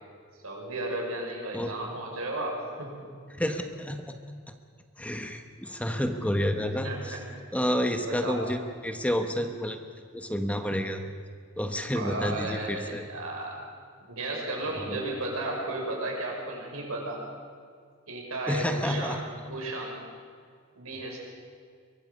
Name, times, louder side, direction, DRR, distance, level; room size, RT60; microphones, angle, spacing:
voice 1, 0.4-3.1 6.8-7.2 8.0-8.4 11.9-13.6 14.1-17.2 18.1-20.0 20.7-21.2, right 2 dB, 85° right, -1 dB, 6.3 m, -34 dB
voice 2, 3.3-4.1 5.0-7.2 7.5-9.8 10.1-11.0 11.6-13.0 14.9-15.0 18.5-19.2, equal, 5° left, 6 dB, 1.1 m, -29 dB
23.5 x 22.5 x 5.4 m, 2.1 s
head